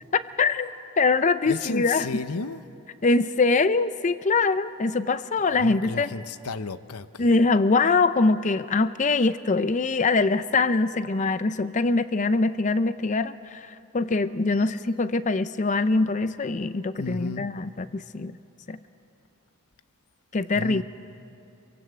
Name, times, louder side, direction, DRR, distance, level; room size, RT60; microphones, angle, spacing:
voice 1, 0.1-2.1 3.0-6.1 7.2-18.4 18.7-18.8 20.3-20.8, left 3 dB, 35° left, 13 dB, 0.5 m, -23 dB
voice 2, 1.5-2.6 5.5-7.3 14.5-14.7 16.9-17.5 20.5-20.8, left 4 dB, 85° left, 12 dB, 0.8 m, -33 dB
26.5 x 23.5 x 7.9 m, 2.6 s
head